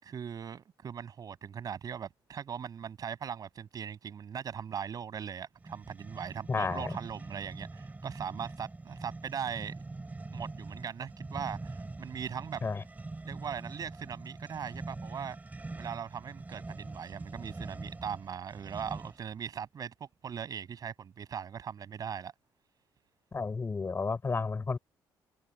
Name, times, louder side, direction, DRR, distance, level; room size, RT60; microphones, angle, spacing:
voice 1, 0.0-9.8 10.3-12.6 13.2-15.4 15.7-22.3, right 7 dB, 50° right, 6.3 m, -40 dB
sound 1, 5.6-19.3, right 3 dB, 20° right, 4.5 m, -44 dB
voice 2, 6.5-6.9 12.6-12.8 23.3-24.8, left 4 dB, 30° left, 5.3 m, -32 dB
cardioid pair, 95°, 8 cm